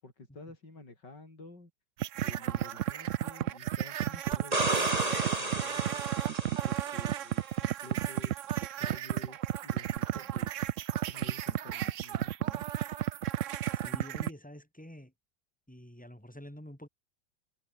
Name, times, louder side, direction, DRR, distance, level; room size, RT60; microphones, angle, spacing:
voice 1, 0.0-1.7 2.2-6.0 6.6-10.6 11.1-12.7, left 2 dB, 60° left, 7.0 m, -51 dB
sound 1, 2.0-14.3, right 12 dB, 90° right, 0.6 m, -33 dB
sound 2, 4.3-7.1 10.0-10.1, right 2 dB, 20° right, 2.6 m, -32 dB
voice 2, 13.8-15.1 15.7-16.9, equal, 5° left, 4.8 m, -47 dB
omnidirectional pair, 2.1 m